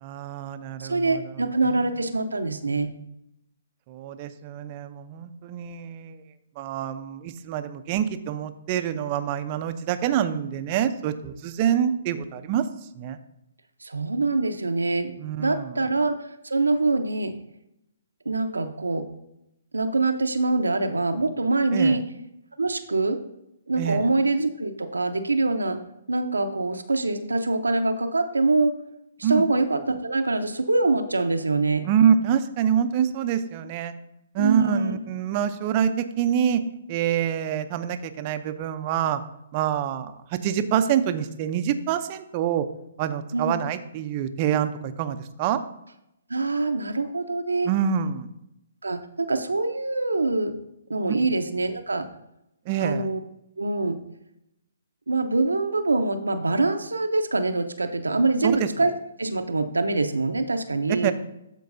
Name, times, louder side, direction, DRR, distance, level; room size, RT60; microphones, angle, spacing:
voice 1, 0.0-1.2 3.9-6.2 6.6-12.6 13.0-13.2 15.2-15.8 21.7-22.0 23.8-24.1 29.2-29.4 31.8-33.9 34.3-36.6 36.9-39.2 39.5-42.7 43.0-45.6 47.6-48.3 52.7-53.1 58.4-58.7 61.0-61.1, right 9 dB, 35° right, 10 dB, 0.6 m, -26 dB
voice 2, 0.8-2.9 13.8-15.1 15.4-16.1 16.4-17.3 18.3-19.0 19.7-22.0 22.6-23.2 23.7-25.8 26.1-28.8 29.3-31.9 34.4-35.0 43.3-43.6 46.3-47.7 48.8-50.6 50.9-52.1 52.8-53.2 53.6-54.0 55.1-58.9 59.2-61.1, right 3 dB, 90° right, 7 dB, 0.7 m, -24 dB
13.5 x 4.6 x 2.6 m, 0.83 s
figure-of-eight pair, 135°, 0 cm